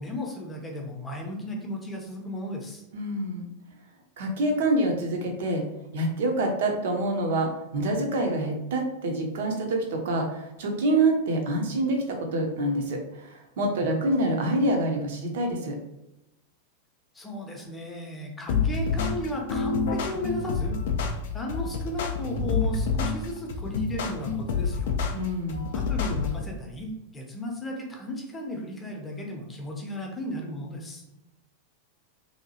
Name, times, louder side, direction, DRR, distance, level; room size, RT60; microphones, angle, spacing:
voice 1, 0.0-2.8 17.1-20.8 21.3-24.9 25.7-31.0, left 1 dB, 15° left, 0 dB, 0.6 m, -35 dB
voice 2, 2.9-3.5 4.2-5.6 5.9-15.8 25.1-25.6, right 1 dB, 55° right, 2 dB, 0.6 m, -26 dB
sound 1, 18.5-26.5, left 5 dB, 55° left, 0.3 m, -28 dB
2.7 x 2.2 x 2.8 m, 0.91 s
figure-of-eight pair, 90°, 0 cm